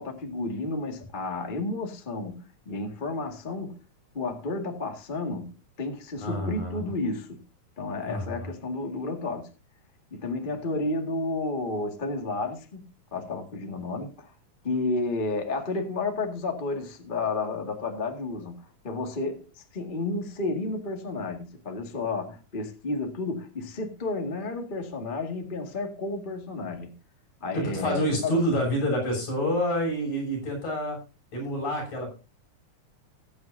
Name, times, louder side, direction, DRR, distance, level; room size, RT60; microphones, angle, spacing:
voice 1, 0.0-3.8 4.1-7.4 7.8-9.5 10.1-12.8 13.1-14.3 14.6-26.9 27.4-28.4, left 3 dB, 20° left, 1.5 m, -31 dB
voice 2, 6.2-6.8 8.1-8.5 27.5-31.0 31.3-32.1, equal, 65° left, 8.3 m, -28 dB
21.5 x 8.7 x 2.7 m
omnidirectional pair, 3.7 m